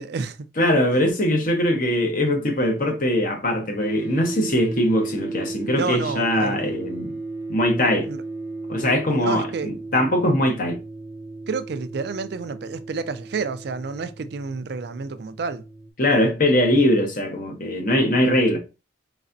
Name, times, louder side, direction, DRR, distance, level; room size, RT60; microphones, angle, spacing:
voice 1, 0.0-0.5 5.8-6.6 8.1-8.2 9.1-9.8 11.5-15.6, right 4 dB, 55° right, 0.4 m, -30 dB
voice 2, 0.6-7.1 7.5-8.1 8.7-10.8 16.0-18.6, left 1 dB, 45° left, 0.8 m, -21 dB
sound 1, 3.8-15.9, right 3 dB, 10° right, 0.6 m, -35 dB
4.0 x 3.3 x 2.5 m
head